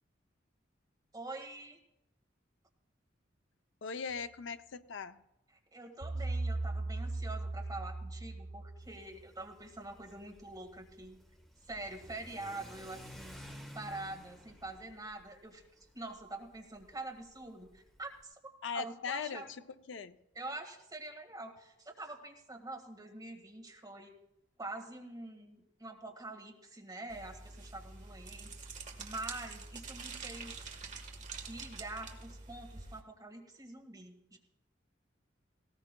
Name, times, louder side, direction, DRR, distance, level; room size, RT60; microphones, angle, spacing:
voice 1, 1.1-1.8 5.7-11.2 11.7-13.4 13.7-15.6 15.9-18.4 18.7-19.5 20.3-24.1 24.6-28.5 29.0-30.6 31.5-34.4, right 2 dB, 20° right, 2 dB, 1.7 m, -45 dB
voice 2, 3.8-5.2 18.6-19.4 19.9-20.2, left 6 dB, 70° left, 10 dB, 0.6 m, -39 dB
sound 1, 6.0-9.1, right 2 dB, 85° right, 1.0 m, -37 dB
Car / Accelerating revving vroom, 8.8-18.2, equal, ahead, 1.2 m, -54 dB
sound 2, 27.1-33.0, right 4 dB, 40° right, 1.4 m, -46 dB
18.5 x 17.0 x 2.2 m, 0.87 s
head